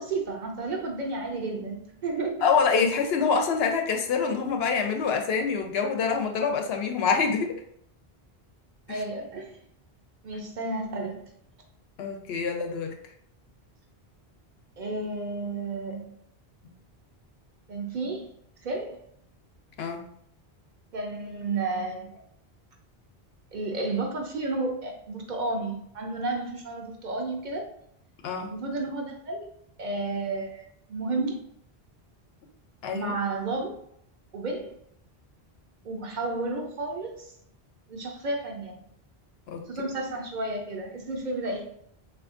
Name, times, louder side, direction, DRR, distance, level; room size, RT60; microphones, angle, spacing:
voice 1, 0.0-2.4 8.9-9.6 10.2-11.2 14.8-16.1 17.7-18.3 18.6-19.0 20.9-22.2 23.5-27.6 28.5-29.5 29.8-30.6 30.9-31.4 32.9-33.7 34.3-34.7 35.8-37.3 37.9-38.8 39.7-41.7, right 3 dB, 55° right, 1 dB, 0.6 m, -32 dB
voice 2, 2.4-7.6 8.9-9.0 12.0-13.0 19.8-20.1 28.2-28.5 32.8-33.1 39.5-39.6, left 5 dB, 80° left, 4 dB, 0.8 m, -26 dB
3.4 x 2.5 x 2.4 m, 0.69 s
omnidirectional pair, 1.0 m